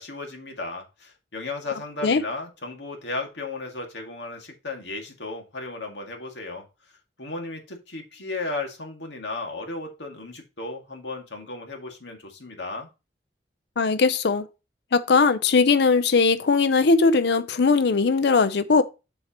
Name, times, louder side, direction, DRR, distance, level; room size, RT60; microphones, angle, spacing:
voice 1, 0.0-6.7 7.2-12.9, left 3 dB, 90° left, 2.1 m, -35 dB
voice 2, 13.8-14.4 14.9-18.8, left 4 dB, 70° left, 0.6 m, -19 dB
7.4 x 6.4 x 3.0 m
head